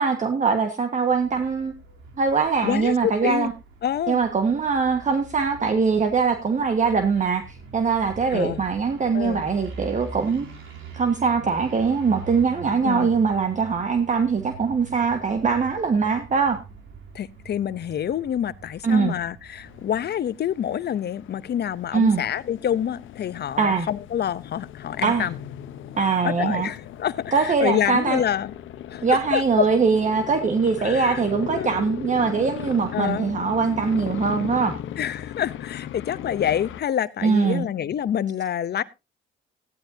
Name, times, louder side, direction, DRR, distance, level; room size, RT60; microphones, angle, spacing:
voice 1, 0.0-1.7 2.2-3.5 4.1-10.5 10.9-16.6 18.8-19.1 21.9-22.2 23.6-23.9 25.0-25.3 26.0-26.7 27.3-28.2 29.0-34.8 37.2-37.7, right 5 dB, 40° right, 1.6 m, -22 dB
sound 1, 1.1-20.0, right 3 dB, 85° right, 3.5 m, -43 dB
voice 2, 2.6-3.5 3.8-4.2 8.3-8.6 9.1-9.4 12.8-13.2 17.1-25.4 26.2-28.5 28.9-29.7 30.8-31.2 31.5-31.7 32.9-33.3 35.0-38.8, left 9 dB, 55° left, 0.8 m, -27 dB
sound 2, 19.6-36.8, left 11 dB, 80° left, 1.0 m, -37 dB
15.5 x 11.5 x 2.8 m
cardioid pair, 90°, 20 cm